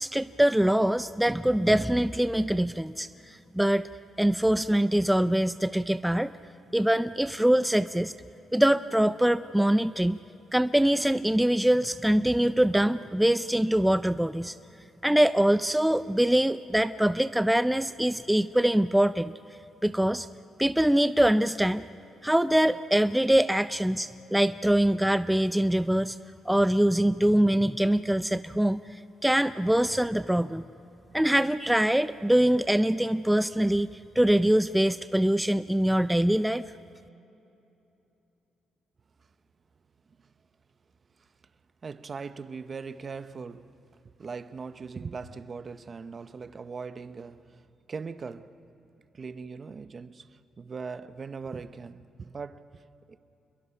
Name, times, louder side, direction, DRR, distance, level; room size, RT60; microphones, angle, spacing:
voice 1, 0.0-3.9 4.2-6.3 6.7-8.1 8.5-10.2 10.5-14.5 15.0-19.3 19.8-20.3 20.6-21.8 22.2-26.2 26.5-28.8 29.2-30.6 31.1-33.9 34.2-36.6, right 1 dB, 5° right, 0.4 m, -23 dB
voice 2, 41.8-43.7 44.0-48.5 49.1-52.8 53.1-53.2, right 5 dB, 40° right, 0.9 m, -40 dB
28.5 x 22.0 x 5.9 m
cardioid pair, 90°, 0 cm